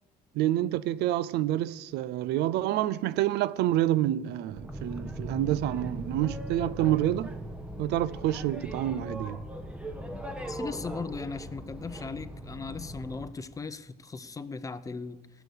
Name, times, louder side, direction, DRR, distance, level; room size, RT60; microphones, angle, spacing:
voice 1, 0.4-7.4 7.8-9.4, right 13 dB, 80° right, 0.5 m, -28 dB
Boat Water vehicle, 4.5-13.3, equal, 5° right, 1.3 m, -39 dB
voice 2, 10.5-15.4, left 4 dB, 20° left, 0.7 m, -38 dB
16.5 x 7.0 x 6.6 m
cardioid pair, 110°, 17 cm